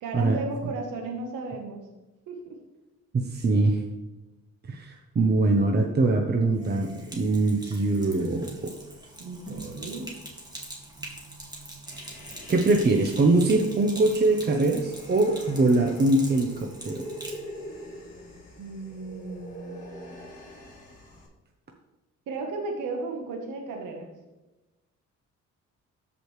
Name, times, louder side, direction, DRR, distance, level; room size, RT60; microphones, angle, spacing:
voice 1, 0.0-1.8 2.3-2.6 9.2-10.1 18.6-20.3 22.3-24.1, right 3 dB, 85° right, 2 dB, 1.4 m, -35 dB
voice 2, 3.1-3.8 4.7-8.7 12.5-17.0, right 2 dB, 35° right, 3 dB, 0.9 m, -23 dB
Sink (filling or washing), 6.5-17.4, right 1 dB, 15° right, 2.1 m, -43 dB
Human voice, 11.9-21.3, equal, 25° left, 3.2 m, -44 dB
14.0 x 5.1 x 3.3 m, 1.1 s
cardioid pair, 90°, 30 cm